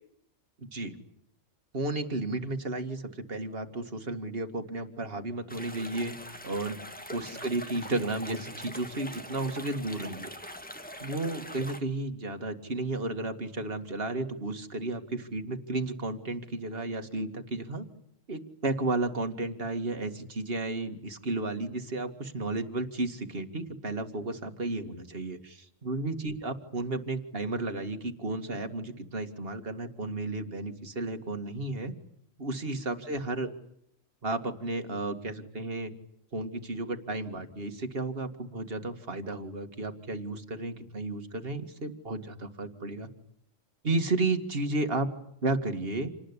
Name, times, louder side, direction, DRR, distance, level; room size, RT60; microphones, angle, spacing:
voice 1, 0.6-1.0 1.7-6.1 6.4-6.8 7.1-10.3 11.0-17.8 18.3-31.9 32.4-33.5 34.2-35.9 36.3-43.1 43.8-45.1 45.4-46.1, right 2 dB, 45° right, 6 dB, 2.3 m, -33 dB
sound 1, 5.5-11.8, left 1 dB, 5° left, 1.7 m, -43 dB
28.5 x 19.5 x 9.9 m, 0.75 s
omnidirectional pair, 1.3 m